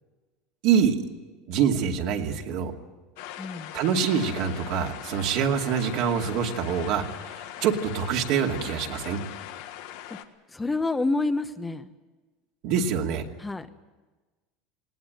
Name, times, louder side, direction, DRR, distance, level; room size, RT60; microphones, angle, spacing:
voice 1, 0.6-1.0 1.5-2.7 3.7-7.0 7.3-9.2 12.6-13.2, right 7 dB, 65° right, 2 dB, 2.5 m, -25 dB
sound 1, 3.2-10.2, left 11 dB, 75° left, 1.6 m, -40 dB
voice 2, 3.4-3.7 10.1-10.2 10.5-11.9 13.4-13.7, left 2 dB, 10° left, 9 dB, 0.9 m, -28 dB
20.0 x 18.0 x 9.1 m, 1.2 s
supercardioid pair, 125°, 0 cm